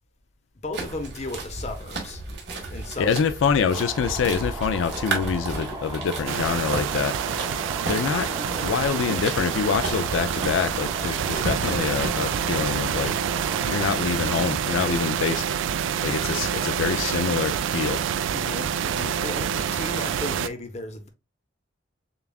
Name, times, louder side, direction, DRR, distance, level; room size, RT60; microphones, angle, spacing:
voice 1, 0.6-2.2 2.7-3.1 18.3-21.1, left 2 dB, 35° left, 0.8 m, -35 dB
sound 1, 0.7-12.1, right 3 dB, 65° right, 1.3 m, -34 dB
voice 2, 3.0-7.2 7.9-8.3 8.6-13.1 13.6-15.4 16.0-18.0, left 6 dB, 85° left, 0.3 m, -25 dB
sound 2, 3.7-13.9, right 1 dB, 15° right, 0.9 m, -36 dB
sound 3, 6.3-20.5, right 8 dB, 85° right, 0.3 m, -27 dB
6.8 x 2.3 x 2.3 m
head